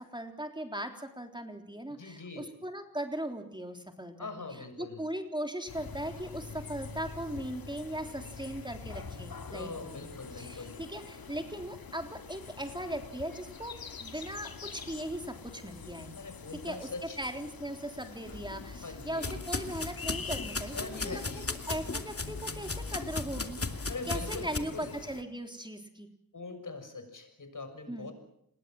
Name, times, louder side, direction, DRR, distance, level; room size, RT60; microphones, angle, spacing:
voice 1, 0.0-10.1 10.3-16.1 16.6-23.6 24.1-26.1 27.9-28.1, right 1 dB, 15° right, 5 dB, 3.6 m, -39 dB
voice 2, 1.9-2.4 4.2-5.0 9.5-10.8 16.1-17.2 18.8-19.4 20.7-21.4 23.8-24.9 26.3-28.1, left 3 dB, 60° left, 8 dB, 6.8 m, -42 dB
sound 1, 5.7-25.2, left 5 dB, 85° left, 2.2 m, -46 dB
sound 2, 18.2-24.6, left 3 dB, 40° left, 2.6 m, -37 dB
28.0 x 21.0 x 7.8 m, 0.74 s
cardioid pair, 50°, 35 cm